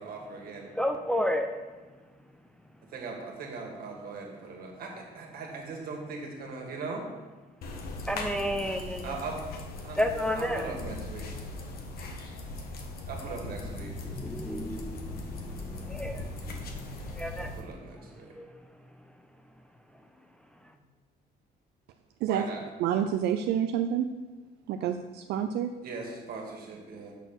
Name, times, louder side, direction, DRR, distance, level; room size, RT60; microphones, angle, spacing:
voice 1, 0.0-0.7 2.8-7.0 9.0-9.4 9.8-10.0 10.3-11.3 13.1-13.9 17.4-18.3 22.3-22.6 25.8-27.1, right 4 dB, 60° right, 1 dB, 1.8 m, -39 dB
voice 2, 0.8-1.5 8.1-9.1 10.0-10.6 14.1-16.3 17.1-17.5 18.4-18.5, equal, 5° left, 4 dB, 0.5 m, -31 dB
sound 1, 7.6-17.6, left 2 dB, 65° left, 1.1 m, -39 dB
voice 3, 22.8-24.1 24.7-25.7, right 9 dB, 75° right, 7 dB, 0.4 m, -28 dB
6.3 x 4.3 x 6.6 m, 1.3 s
cardioid pair, 110°, 17 cm